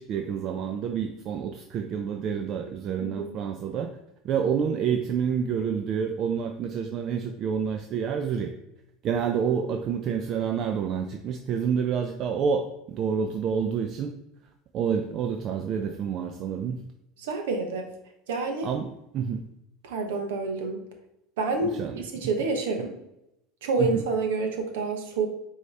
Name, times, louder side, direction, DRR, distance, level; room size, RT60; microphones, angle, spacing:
voice 1, 0.0-3.9 4.2-8.5 9.0-14.1 14.7-16.8 18.6-19.4 21.6-22.3 23.8-24.0, right 7 dB, 50° right, 6 dB, 0.4 m, -28 dB
voice 2, 3.0-3.3 17.2-17.9 18.3-18.7 19.8-20.8 21.4-22.9 23.6-25.3, right 3 dB, 75° right, 4 dB, 0.8 m, -28 dB
4.6 x 2.8 x 3.2 m, 0.85 s
hypercardioid pair, 80°, 0 cm